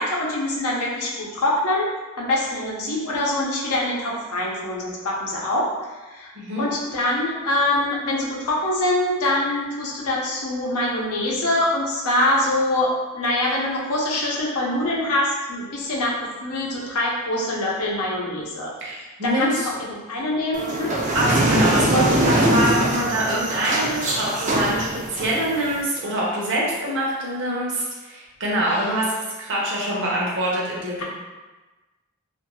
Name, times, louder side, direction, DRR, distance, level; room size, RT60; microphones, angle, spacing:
voice 1, 0.0-1.9 2.2-6.3 6.6-18.7 19.0-20.9 28.7-28.9, left 1 dB, 80° left, -3 dB, 0.7 m, -24 dB
voice 2, 18.8-19.7 21.1-31.0, right 1 dB, 55° right, -5 dB, 0.7 m, -24 dB
sound 1, 20.5-25.8, right 1 dB, 35° right, 0.4 m, -22 dB
2.5 x 2.2 x 3.0 m, 1.2 s
head